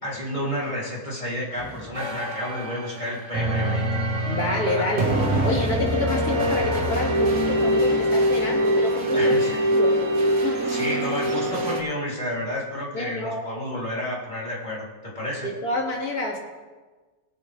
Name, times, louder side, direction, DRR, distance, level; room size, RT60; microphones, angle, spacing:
voice 1, 0.0-4.0 4.7-4.9 9.1-9.6 10.7-15.5, equal, 30° left, -6 dB, 3.1 m, -31 dB
sound 1, 1.6-11.8, right 1 dB, 60° right, 1.9 m, -23 dB
voice 2, 4.3-5.1 5.4-9.4 9.7-9.9 10.4-10.7 12.9-13.4 15.4-16.4, left 2 dB, 75° left, -1 dB, 2.6 m, -28 dB
20.0 x 7.9 x 3.3 m, 1.3 s
omnidirectional pair, 1.6 m